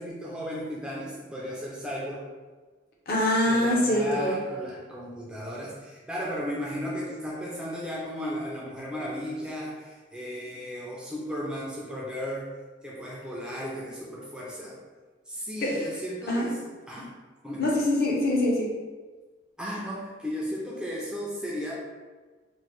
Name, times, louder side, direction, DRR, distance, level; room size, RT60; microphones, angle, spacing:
voice 1, 0.0-2.2 3.5-12.5 12.8-14.8 15.3-16.6 16.9-17.1 17.4-17.8 19.6-21.7, equal, 5° right, -5 dB, 0.3 m, -35 dB
voice 2, 3.1-4.4 15.6-15.9 16.3-16.5 17.6-18.8, left 1 dB, 50° left, -3 dB, 0.6 m, -24 dB
3.0 x 2.1 x 3.0 m, 1.3 s
head